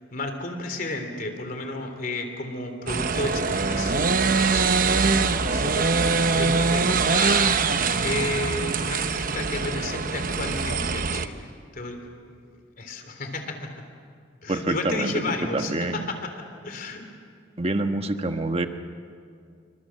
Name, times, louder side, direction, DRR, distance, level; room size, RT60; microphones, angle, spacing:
voice 1, 0.1-4.9 5.4-12.1 12.8-13.7 14.4-17.0, left 2 dB, 50° left, 6 dB, 3.3 m, -32 dB
sound 1, 2.9-11.3, right 4 dB, 50° right, 0.9 m, -23 dB
voice 2, 14.5-16.0 17.6-18.7, right 2 dB, 30° right, 7 dB, 1.3 m, -26 dB
27.5 x 25.0 x 7.6 m, 2.3 s
head